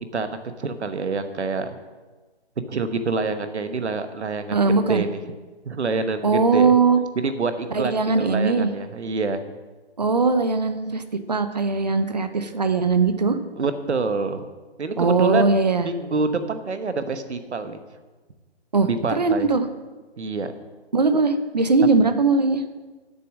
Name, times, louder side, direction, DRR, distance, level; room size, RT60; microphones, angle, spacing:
voice 1, 0.1-1.7 2.7-5.1 5.6-6.7 7.1-9.4 13.6-14.4 14.8-15.5 15.8-17.8 18.7-19.5 20.2-20.5, right 4 dB, 85° right, 9 dB, 1.2 m, -27 dB
voice 2, 4.5-5.0 6.2-7.0 7.7-8.7 10.0-11.0 11.3-13.4 15.0-15.9 18.7-18.9 19.2-19.7 20.9-22.6, right 4 dB, 40° right, 9 dB, 0.7 m, -20 dB
8.4 x 7.0 x 7.2 m, 1.3 s
hypercardioid pair, 175°, 33 cm